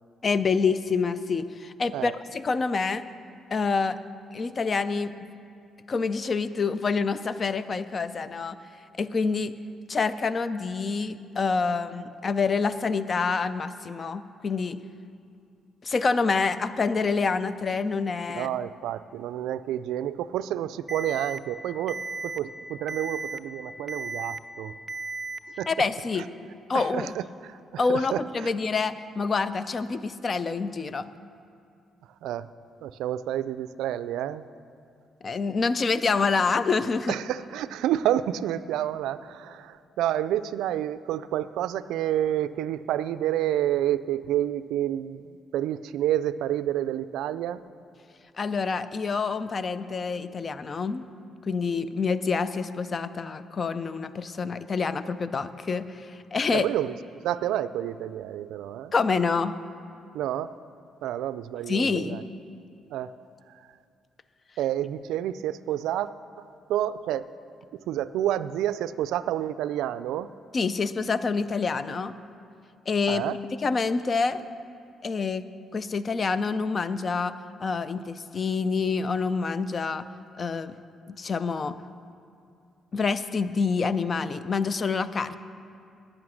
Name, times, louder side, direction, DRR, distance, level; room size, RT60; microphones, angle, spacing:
voice 1, 0.2-3.0 3.5-4.0 4.3-5.1 5.9-8.6 9.0-9.5 9.9-14.8 15.8-18.5 25.7-26.2 26.7-27.1 27.8-31.1 35.2-37.2 48.4-51.0 51.4-56.7 58.9-59.5 61.7-62.2 70.5-72.1 72.9-73.3 73.6-74.4 75.0-75.5 75.7-80.1 80.4-80.8 81.1-81.8 82.9-85.4, left 4 dB, 40° left, 14 dB, 0.5 m, -27 dB
voice 2, 18.3-24.8 25.6-25.7 26.2-26.3 26.7-28.5 32.2-32.5 32.8-34.4 37.1-47.6 56.5-56.9 57.2-58.9 60.1-60.5 61.0-62.2 62.9-63.1 64.6-66.1 66.4-67.3 67.9-70.3 73.1-73.4, right 12 dB, 90° right, 14 dB, 0.3 m, -29 dB
Alarm, 20.9-21.4 21.9-22.4 22.9-23.4 23.9-24.4 24.9-25.4, right 3 dB, 15° right, 0.6 m, -34 dB
11.0 x 8.8 x 6.4 m, 2.5 s
cardioid pair, 90°, 0 cm